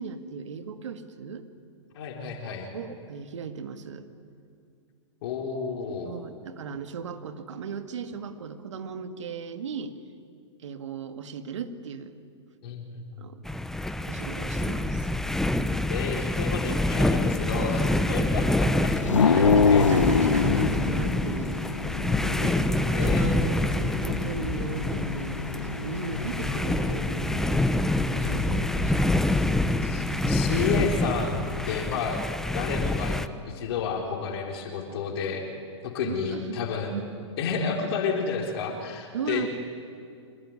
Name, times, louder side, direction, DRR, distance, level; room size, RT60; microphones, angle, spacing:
voice 1, 0.0-1.5 2.7-4.1 6.0-10.0 10.6-12.2 13.2-13.4 14.1-15.1 17.1-18.3 18.8-18.9 19.3-21.7 22.2-23.4 23.7-25.5 25.7-27.7 28.2-29.5 31.9-32.0 36.0-36.6 36.9-37.2 39.1-39.5, right 6 dB, 70° right, 8 dB, 2.0 m, -37 dB
voice 2, 1.9-2.7 5.2-6.1 12.6-13.1 15.9-19.9 21.3-21.4 22.9-23.4 28.2-29.0 29.8-32.2 32.5-33.2 33.5-35.5 35.8-36.9 37.4-39.4, left 5 dB, 55° left, 1 dB, 3.8 m, -31 dB
sound 1, 13.4-33.3, left 1 dB, 5° left, 0.8 m, -27 dB
sound 2, 19.0-31.8, left 5 dB, 90° left, 1.1 m, -28 dB
25.5 x 20.0 x 9.9 m, 2.3 s
hypercardioid pair, 115°, 16 cm